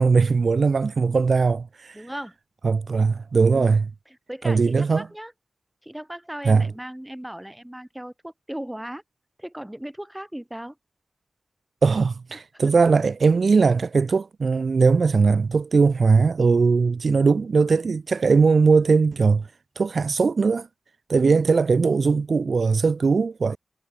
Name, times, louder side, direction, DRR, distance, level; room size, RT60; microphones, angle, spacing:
voice 1, 0.0-2.0 2.6-3.8 4.4-5.1 6.4-6.7 11.8-19.5 19.8-20.7 21.1-23.6, right 4 dB, 65° right, 0.7 m, -20 dB
voice 2, 1.9-2.4 3.5-3.8 4.1-5.3 5.8-9.0 9.4-10.8 12.5-12.7 21.1-21.5, right 1 dB, 10° right, 1.2 m, -37 dB
cardioid pair, 55°, 0 cm